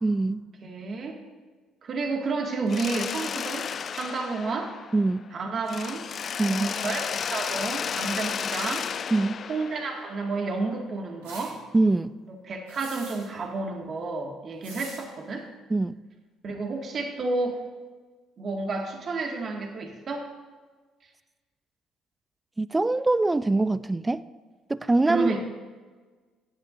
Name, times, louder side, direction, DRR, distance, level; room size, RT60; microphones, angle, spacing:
voice 1, 0.0-0.4 4.9-5.2 6.4-6.6 9.1-9.4 11.7-12.1 15.7-15.9 22.6-24.2 24.7-25.3, right 2 dB, 20° right, 17 dB, 0.4 m, -23 dB
voice 2, 0.6-1.2 1.8-3.7 4.0-4.7 5.3-6.0 6.5-8.9 9.5-11.6 12.5-15.5 16.4-17.6 18.4-20.3 25.1-25.4, right 3 dB, 50° right, 2 dB, 2.0 m, -30 dB
Mechanisms, 2.7-5.3 5.7-10.5, left 7 dB, 50° left, 0.4 m, -33 dB
sound 1, 11.2-11.5 12.7-13.3 14.6-15.0, right 3 dB, 90° right, 3.0 m, -42 dB
15.5 x 10.0 x 2.6 m, 1.4 s
hypercardioid pair, 60°, 0 cm